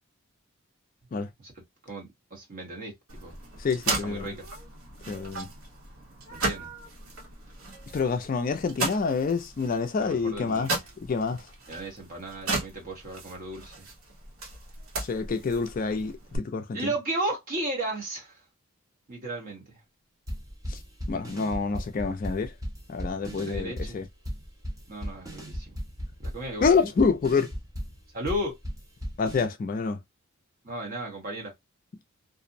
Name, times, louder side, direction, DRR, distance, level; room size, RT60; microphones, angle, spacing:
voice 1, 1.8-3.4 4.0-4.5 6.3-6.7 10.0-10.8 11.7-13.9 16.7-18.4 19.1-19.8 23.2-24.0 24.9-25.8 26.2-26.8 28.1-28.6 30.6-31.5, right 1 dB, 40° right, 1.1 m, -35 dB
sound 1, 3.1-16.4, right 3 dB, 75° right, 1.0 m, -36 dB
voice 2, 3.6-4.3 5.1-5.5 7.9-10.7 11.0-11.5 15.0-16.8 20.7-20.8 21.1-22.5 22.9-24.0 26.6-27.5 29.2-30.0, left 4 dB, 40° left, 0.3 m, -27 dB
sound 2, 20.3-29.4, equal, 15° right, 0.7 m, -36 dB
2.5 x 2.0 x 2.5 m
head